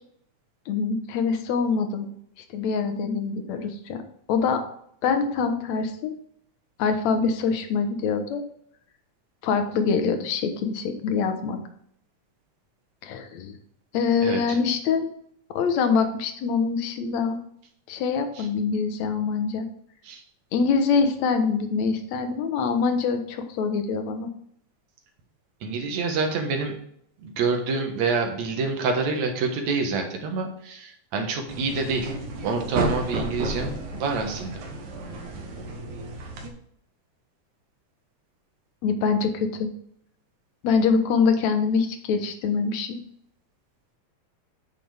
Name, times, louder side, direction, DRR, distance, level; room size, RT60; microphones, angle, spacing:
voice 1, 0.7-2.1 2.5-4.0 4.3-4.6 5.0-6.1 6.8-8.4 9.4-11.6 13.0-13.5 13.9-15.1 15.5-17.4 17.9-19.7 20.5-24.3 38.8-39.7 40.6-43.0, left 5 dB, 70° left, 7 dB, 2.2 m, -24 dB
voice 2, 14.2-14.6 18.4-18.5 20.0-20.2 25.6-26.7 27.2-32.2 32.4-34.6, right 4 dB, 70° right, 4 dB, 2.6 m, -27 dB
sound 1, 31.5-36.5, right 2 dB, 85° right, 2.7 m, -32 dB
9.5 x 6.4 x 3.4 m, 0.69 s
omnidirectional pair, 3.4 m